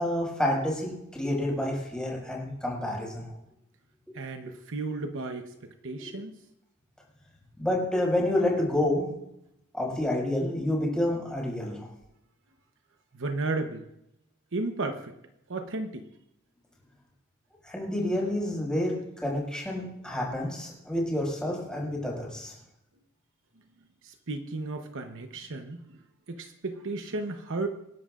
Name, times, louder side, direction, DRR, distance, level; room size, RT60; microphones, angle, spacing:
voice 1, 0.0-3.3 4.5-4.6 7.6-9.0 9.7-11.9 17.6-18.9 19.2-22.5, left 1 dB, 5° left, -3 dB, 5.6 m, -29 dB
voice 2, 4.1-5.6 5.8-6.3 13.1-13.9 14.5-15.1 15.5-16.1 24.0-26.0 26.3-27.7, right 2 dB, 65° right, 6 dB, 1.0 m, -34 dB
26.5 x 11.0 x 2.5 m, 0.83 s
head